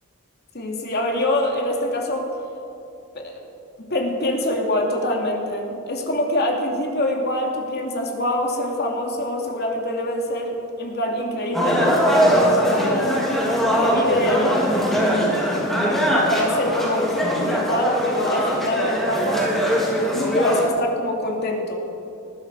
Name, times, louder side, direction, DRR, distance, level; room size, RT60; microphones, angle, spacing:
voice 1, 0.5-2.3 3.1-3.4 3.8-13.2 13.8-15.7 16.3-19.4 20.1-21.8, left 1 dB, 50° left, 1 dB, 2.8 m, -25 dB
sound 1, 11.5-20.6, equal, ahead, 3.4 m, -21 dB
20.0 x 14.5 x 4.9 m, 3.0 s
head